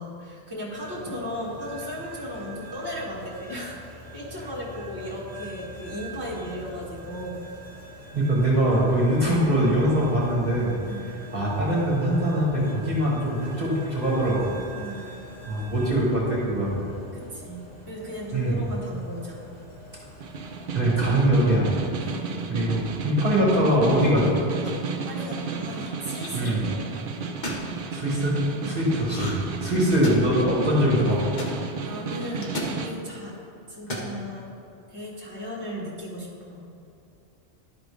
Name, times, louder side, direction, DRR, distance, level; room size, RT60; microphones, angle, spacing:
voice 1, 0.0-7.4 10.9-11.1 14.7-15.1 17.1-19.5 22.0-22.4 25.1-26.8 28.6-28.8 31.8-33.3 33.7-34.4 34.9-36.7, equal, 20° right, -7 dB, 1.5 m, -36 dB
sound 1, 0.7-20.7, right 1 dB, 80° left, 2.1 m, -44 dB
voice 2, 8.1-10.7 11.3-14.5 15.5-16.8 18.3-18.6 20.7-21.8 22.5-24.4 26.3-26.6 27.9-28.4 28.6-29.4 29.6-31.2, right 1 dB, 40° right, -6 dB, 1.6 m, -22 dB
Snare drum, 20.2-33.0, right 5 dB, 60° right, 0.7 m, -33 dB
sound 2, 24.6-25.0 25.8-26.5 27.2-27.7 29.0-29.5 29.8-30.4 31.4-31.5 32.4-32.8 33.7-34.1, left 1 dB, 45° left, 1.1 m, -34 dB
11.5 x 3.8 x 4.9 m, 2.8 s
omnidirectional pair, 1.1 m